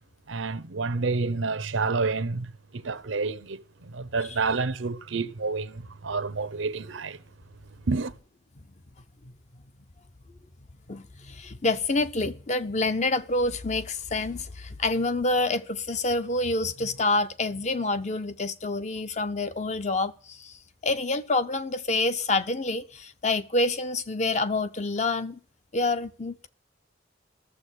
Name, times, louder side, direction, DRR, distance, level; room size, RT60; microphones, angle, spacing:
voice 1, 0.3-7.2 7.9-8.1, right 4 dB, 85° right, 0.8 m, -29 dB
voice 2, 10.9-20.6 20.8-25.4 25.7-26.5, left 2 dB, 35° left, 0.7 m, -27 dB
13.0 x 7.1 x 9.3 m
head